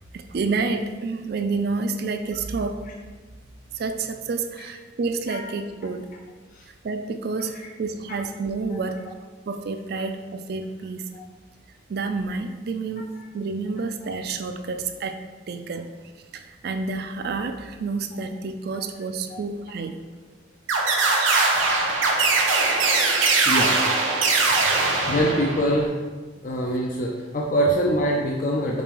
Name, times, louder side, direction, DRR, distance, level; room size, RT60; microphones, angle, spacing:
voice 1, 0.1-2.8 3.7-6.1 6.8-9.0 9.5-11.1 11.9-13.1 13.3-15.2 15.5-15.9 16.3-20.0 24.6-25.1, right 4 dB, 55° right, 7 dB, 0.3 m, -29 dB
sound 1, 20.7-25.8, right 3 dB, 90° right, 0.7 m, -21 dB
voice 2, 24.8-26.0 26.4-28.8, equal, 45° left, -2 dB, 0.4 m, -24 dB
5.2 x 3.3 x 3.0 m, 1.3 s
head